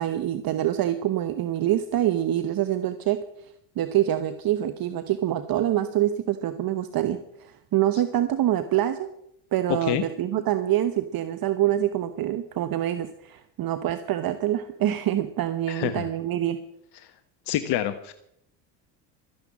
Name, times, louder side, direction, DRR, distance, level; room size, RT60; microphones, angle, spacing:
voice 1, 0.0-3.2 3.8-9.1 9.5-16.6, right 12 dB, 45° right, 10 dB, 1.1 m, -25 dB
voice 2, 15.7-16.0 17.5-18.1, left 12 dB, 55° left, 9 dB, 1.2 m, -27 dB
13.0 x 10.5 x 7.3 m, 0.76 s
hypercardioid pair, 80°, 49 cm